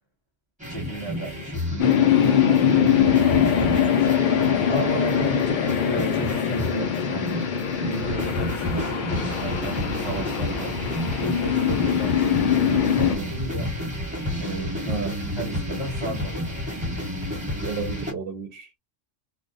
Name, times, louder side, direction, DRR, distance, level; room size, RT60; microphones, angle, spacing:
sound 1, 0.6-18.1, left 1 dB, 5° right, 0.9 m, -31 dB
voice 1, 0.7-4.3 4.7-7.4 7.8-10.8 11.2-13.7 14.4-15.0 15.4-16.6, right 2 dB, 25° left, 0.8 m, -34 dB
sound 2, 1.8-13.2, left 8 dB, 60° left, 0.5 m, -22 dB
voice 2, 14.9-15.2 17.6-18.8, right 5 dB, 60° right, 0.7 m, -32 dB
2.4 x 2.1 x 2.5 m
omnidirectional pair, 1.3 m